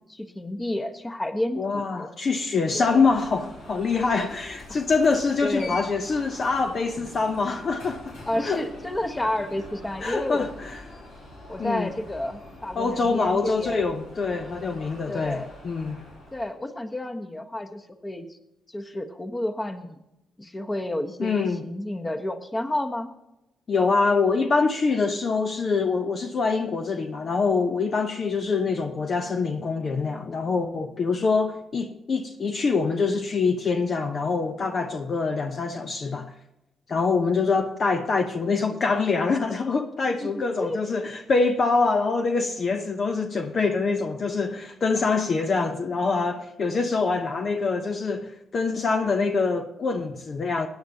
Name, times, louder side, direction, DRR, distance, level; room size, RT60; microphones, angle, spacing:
voice 1, 0.1-2.1 2.7-3.0 5.4-5.8 8.3-10.5 11.5-13.8 15.1-15.5 16.3-18.4 18.7-20.0 20.4-23.1 40.2-40.8, left 1 dB, 20° left, 1.3 m, -31 dB
voice 2, 1.6-8.2 8.4-8.6 10.0-10.5 11.6-11.9 12.8-15.4 15.6-16.0 21.2-21.6 23.7-36.3 36.9-50.7, left 4 dB, 50° left, 0.9 m, -25 dB
Alarm, 2.7-16.6, left 2 dB, 80° left, 3.8 m, -44 dB
17.0 x 9.7 x 2.9 m
supercardioid pair, 50°, 0 cm